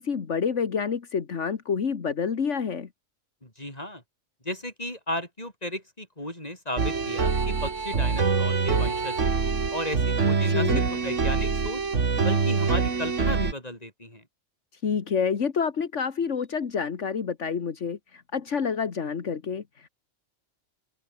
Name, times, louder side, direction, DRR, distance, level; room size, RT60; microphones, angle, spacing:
voice 1, 0.0-2.9 10.4-10.8 14.8-19.9, left 6 dB, 75° left, 1.8 m, -28 dB
voice 2, 3.4-4.0 4.5-9.3 9.7-11.8 12.2-14.2, left 1 dB, 30° left, 7.0 m, -34 dB
sound 1, 6.8-13.5, right 5 dB, 80° right, 2.4 m, -25 dB
open air
omnidirectional pair, 1.3 m